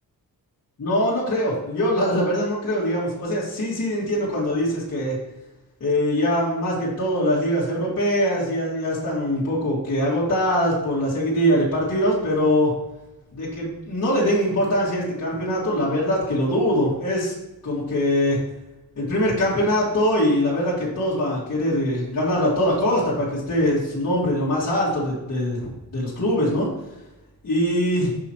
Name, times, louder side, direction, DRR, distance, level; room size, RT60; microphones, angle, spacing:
voice 1, 0.8-5.2 5.8-12.7 13.3-17.3 17.6-18.4 19.0-26.7 27.4-28.1, equal, 45° left, -8 dB, 2.1 m, -22 dB
6.1 x 5.6 x 3.0 m, 1.0 s
wide cardioid pair, 145°, 37 cm